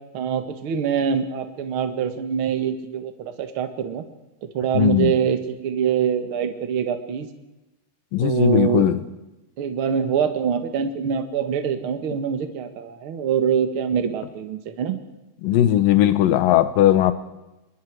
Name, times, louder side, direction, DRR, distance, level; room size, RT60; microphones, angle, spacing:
voice 1, 0.1-4.0 4.5-7.3 8.2-8.9 9.6-15.0, right 7 dB, 50° right, 7 dB, 1.9 m, -24 dB
voice 2, 4.7-5.1 8.1-9.0 15.4-17.1, left 12 dB, 80° left, 12 dB, 2.7 m, -18 dB
25.5 x 21.5 x 4.8 m, 0.99 s
omnidirectional pair, 4.2 m